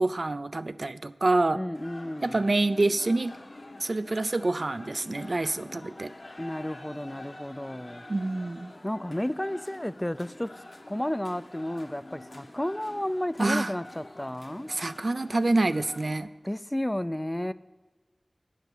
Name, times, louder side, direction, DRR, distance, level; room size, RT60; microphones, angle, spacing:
voice 1, 0.0-1.6 2.2-3.4 3.8-6.1 8.1-8.7 13.4-13.7 14.7-16.3, right 2 dB, 70° right, 13 dB, 0.3 m, -27 dB
voice 2, 1.5-2.4 6.4-8.0 8.8-10.5 10.9-14.7 16.4-17.5, left 1 dB, 20° left, 15 dB, 0.3 m, -32 dB
sound 1, 1.7-16.2, left 2 dB, 75° left, 1.2 m, -47 dB
9.1 x 5.2 x 7.9 m, 1.2 s
wide cardioid pair, 45°, 0 cm